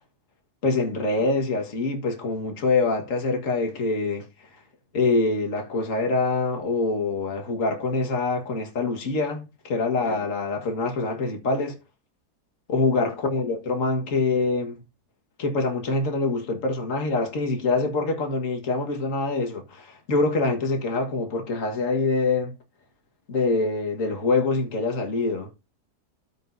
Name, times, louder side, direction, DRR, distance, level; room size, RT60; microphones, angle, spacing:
voice 1, 0.6-4.5 4.9-11.8 12.7-14.8 15.4-22.5 23.3-25.5, left 3 dB, 55° left, 1.9 m, -25 dB
13.5 x 5.2 x 2.6 m
omnidirectional pair, 1.7 m